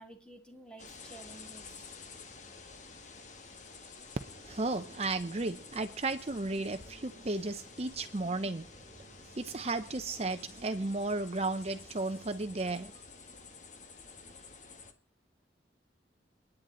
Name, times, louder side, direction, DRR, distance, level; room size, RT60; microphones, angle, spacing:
voice 1, 0.0-2.1, right 1 dB, 5° left, 2.4 m, -52 dB
sound 1, 0.8-14.9, left 4 dB, 40° left, 1.7 m, -51 dB
voice 2, 4.4-8.7 9.4-12.9, right 2 dB, 35° right, 0.7 m, -34 dB
30.0 x 10.0 x 3.9 m
head